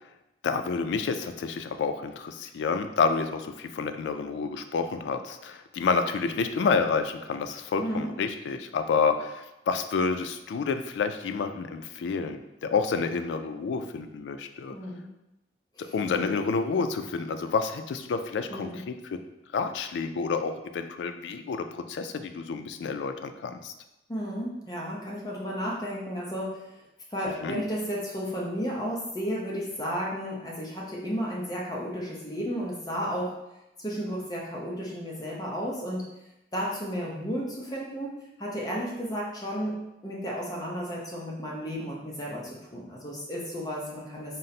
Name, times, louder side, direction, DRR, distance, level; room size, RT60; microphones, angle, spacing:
voice 1, 0.4-14.8 15.8-19.3 19.5-23.7 27.4-27.6, left 5 dB, 90° left, 8 dB, 0.3 m, -29 dB
voice 2, 14.7-15.1 15.8-15.9 18.5-18.8 24.1-26.6 27.1-33.3 33.8-36.1 36.5-38.1 38.4-39.7 40.0-44.4, equal, 20° left, -4 dB, 0.6 m, -33 dB
3.9 x 2.0 x 4.1 m, 0.91 s
head